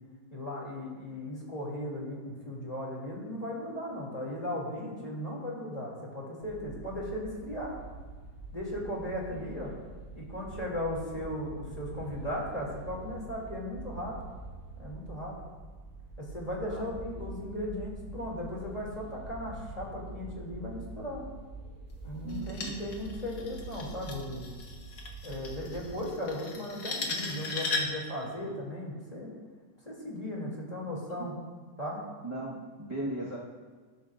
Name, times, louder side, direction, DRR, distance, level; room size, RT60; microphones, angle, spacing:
voice 1, 0.3-7.7 8.5-9.7 10.1-14.1 14.8-15.4 16.2-21.2 22.0-24.4 25.2-29.3 29.8-31.3 31.8-32.0, left 1 dB, 20° left, -3 dB, 2.7 m, -37 dB
sound 1, 6.4-26.0, right 2 dB, 40° right, 3.2 m, -45 dB
voice 2, 16.6-17.3 22.2-22.7 32.2-33.4, right 2 dB, 20° right, -7 dB, 1.3 m, -38 dB
sound 2, 22.3-28.1, left 3 dB, 70° left, 1.9 m, -37 dB
19.5 x 11.0 x 2.5 m, 1.4 s
omnidirectional pair, 1.8 m